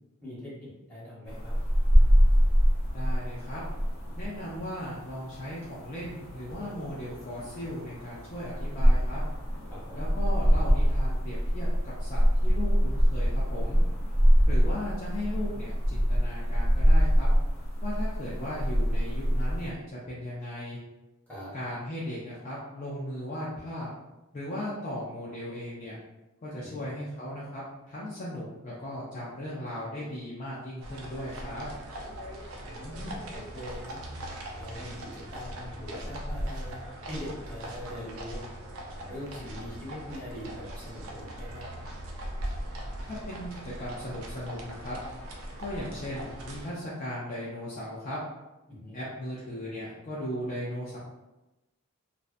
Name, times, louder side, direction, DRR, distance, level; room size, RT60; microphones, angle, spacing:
voice 1, 0.2-1.6 9.7-10.1 21.3-21.5 26.6-26.8 32.7-34.0 34.6-38.5 38.9-41.6 48.7-49.0, left 1 dB, 10° left, -10 dB, 1.0 m, -42 dB
sound 1, 1.3-19.7, equal, 75° left, 0.7 m, -25 dB
voice 2, 2.9-3.6 4.2-9.2 9.9-13.8 14.5-17.3 17.8-20.8 21.5-23.9 24.3-26.0 26.4-31.7 43.0-45.0 45.6-48.2 48.9-51.0, left 1 dB, 35° left, -7 dB, 0.4 m, -37 dB
sound 2, 30.8-46.7, right 1 dB, 80° right, 0.5 m, -40 dB
2.5 x 2.1 x 2.5 m, 1.0 s
head